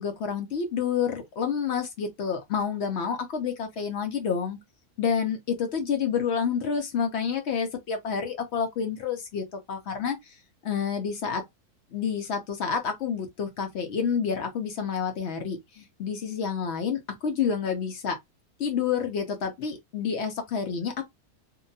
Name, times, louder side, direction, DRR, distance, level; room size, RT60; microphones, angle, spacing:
voice 1, 0.0-4.6 5.0-10.2 10.6-11.4 11.9-18.2 18.6-21.0, left 6 dB, 65° left, 0.7 m, -29 dB
2.8 x 2.2 x 2.6 m
omnidirectional pair, 1.6 m